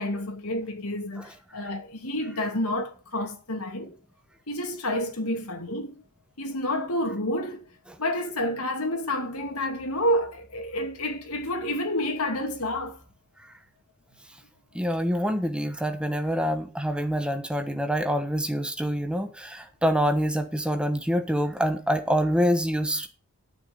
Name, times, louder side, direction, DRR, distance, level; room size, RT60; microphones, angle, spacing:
voice 1, 0.0-4.0 4.5-6.0 6.4-7.7 8.0-13.0, left 1 dB, 85° left, 2.5 m, -29 dB
voice 2, 14.7-23.1, equal, 5° right, 1.1 m, -26 dB
9.6 x 7.4 x 7.1 m
head